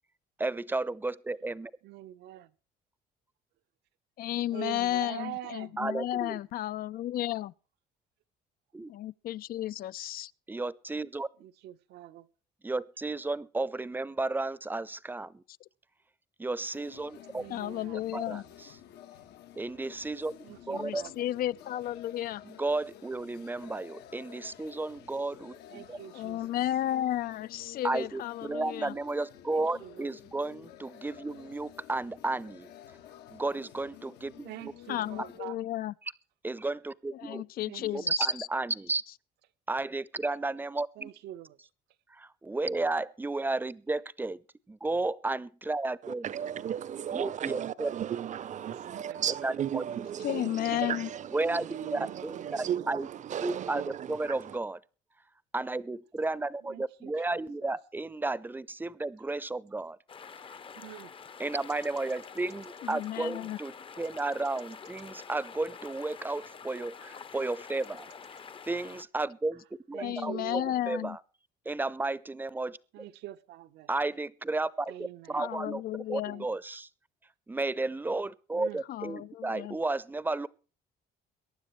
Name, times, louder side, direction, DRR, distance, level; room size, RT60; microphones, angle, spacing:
voice 1, 0.4-1.7 5.8-6.4 8.7-8.9 10.5-11.3 12.6-15.4 16.4-17.4 18.1-18.4 19.6-20.4 20.7-21.0 22.5-26.0 27.8-32.7 33.3-34.7 36.4-37.4 37.9-39.0 39.7-41.1 42.2-44.4 44.7-46.3 47.1-47.9 49.4-49.8 51.3-53.1 53.4-54.8 55.5-60.0 61.4-63.7 64.0-68.1 68.6-70.4 70.9-71.2 71.7-73.0 73.9-75.8 76.1-76.9 77.5-80.5, right 2 dB, 10° right, 0.7 m, -33 dB
voice 2, 1.8-2.5 4.5-5.8 11.4-12.3 17.3-18.1 20.4-21.3 25.7-26.4 29.5-30.1 34.4-35.6 37.7-38.1 40.9-41.6 48.5-49.2 50.3-51.0 51.9-52.7 53.0-53.3 56.6-57.8 60.8-61.1 69.9-70.8 72.9-73.9 74.9-75.8 76.2-76.5 78.5-78.8, right 14 dB, 80° right, 1.0 m, -45 dB
voice 3, 4.2-7.5 8.9-10.3 17.5-18.4 20.7-22.4 26.1-29.0 34.9-35.9 37.1-38.5 50.2-51.1 62.8-63.6 70.0-71.2 75.4-76.5 78.9-79.8, left 13 dB, 60° left, 0.5 m, -33 dB
sound 1, 16.7-35.4, left 11 dB, 80° left, 1.4 m, -52 dB
voice 4, 46.0-54.6, right 9 dB, 45° right, 0.7 m, -35 dB
sound 2, 60.1-69.0, left 6 dB, 30° left, 0.8 m, -47 dB
22.5 x 10.0 x 3.3 m
cardioid pair, 110°, 17 cm